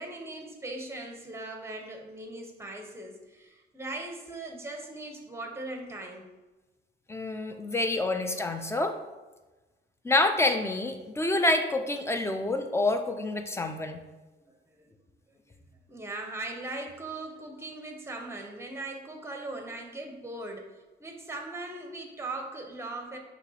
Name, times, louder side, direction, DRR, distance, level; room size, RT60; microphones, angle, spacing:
voice 1, 0.0-6.3 14.5-14.8 15.9-20.7 21.0-23.2, right 2 dB, 15° right, 3 dB, 0.8 m, -39 dB
voice 2, 7.1-9.0 10.0-14.0, left 2 dB, 15° left, 7 dB, 0.4 m, -27 dB
5.8 x 3.0 x 2.8 m, 1.2 s
cardioid pair, 90°, 20 cm